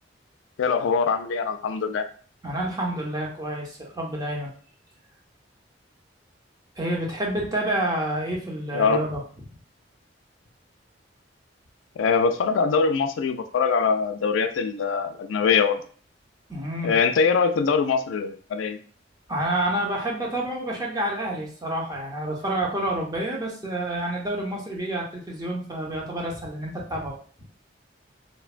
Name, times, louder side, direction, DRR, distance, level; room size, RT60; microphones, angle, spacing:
voice 1, 0.6-2.1 8.7-9.0 12.0-15.8 16.8-18.8, left 5 dB, 90° left, 9 dB, 0.3 m, -23 dB
voice 2, 2.4-4.5 6.8-9.2 16.5-16.9 19.3-27.2, right 1 dB, 20° right, -2 dB, 0.7 m, -28 dB
3.1 x 2.2 x 2.4 m, 0.44 s
head